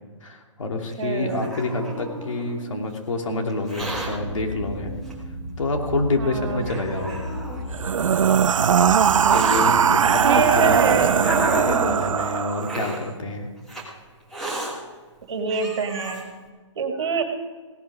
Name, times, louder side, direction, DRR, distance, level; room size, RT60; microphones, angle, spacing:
voice 1, 0.2-4.9 5.6-7.2 9.3-13.5, left 2 dB, 75° left, 2 dB, 2.8 m, -27 dB
Hiss, 0.9-2.6 3.5-4.1 5.1-5.2 6.0-6.1 6.6-7.6 8.5-9.7 10.5-12.0 12.6-13.0 13.7-13.8 14.3-14.7 15.2-15.3 15.5-16.2, right 1 dB, ahead, 1.6 m, -32 dB
voice 2, 1.0-1.4 6.2-6.7 10.2-11.2 15.3-16.3 16.8-17.2, right 6 dB, 60° right, 4 dB, 2.0 m, -25 dB
sound 1, 3.8-11.9, equal, 35° left, 2.9 m, -34 dB
sound 2, 7.7-13.0, right 7 dB, 75° right, 0.6 m, -20 dB
17.0 x 11.5 x 4.9 m, 1.4 s
hypercardioid pair, 170°, 16 cm